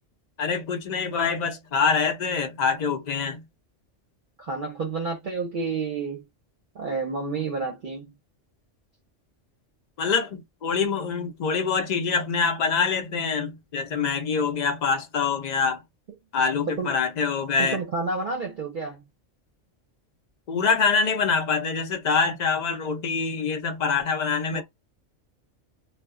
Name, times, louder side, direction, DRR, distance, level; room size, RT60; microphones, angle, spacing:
voice 1, 0.4-3.4 10.0-15.8 16.3-17.8 20.5-24.6, left 5 dB, 50° left, 0.6 m, -25 dB
voice 2, 4.4-6.2 6.7-8.1 16.8-16.9 17.6-19.0 24.5-24.6, right 4 dB, 50° right, 0.7 m, -30 dB
2.2 x 2.1 x 3.5 m
omnidirectional pair, 1.3 m